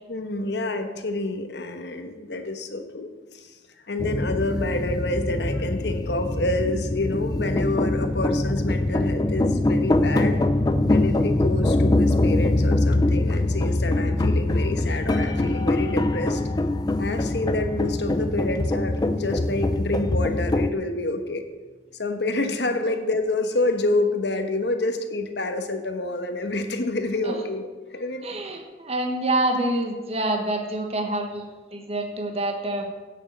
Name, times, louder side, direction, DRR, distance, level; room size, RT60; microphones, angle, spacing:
voice 1, 0.1-3.6 3.9-10.4 10.9-16.4 17.0-21.4 22.0-28.3, left 2 dB, 65° left, 7 dB, 1.2 m, -28 dB
sound 1, 4.0-20.7, left 2 dB, 20° left, 0.4 m, -23 dB
voice 2, 28.2-32.9, right 1 dB, 35° right, 3 dB, 1.3 m, -27 dB
8.3 x 7.4 x 8.3 m, 1.3 s
head